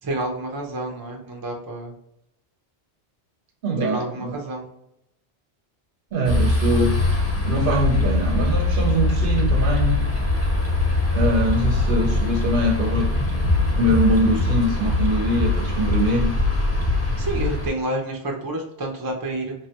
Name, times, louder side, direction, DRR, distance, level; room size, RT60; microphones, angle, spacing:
voice 1, 0.0-1.9 3.8-4.6 17.2-19.5, right 1 dB, 30° right, 1 dB, 0.4 m, -29 dB
voice 2, 3.6-4.4 6.1-7.0 7.4-10.0 11.1-13.1 13.7-16.5, right 1 dB, 60° right, 2 dB, 0.7 m, -23 dB
sound 1, 6.2-17.7, left 2 dB, 15° left, 0.6 m, -22 dB
3.3 x 2.1 x 2.8 m, 0.80 s
omnidirectional pair, 1.1 m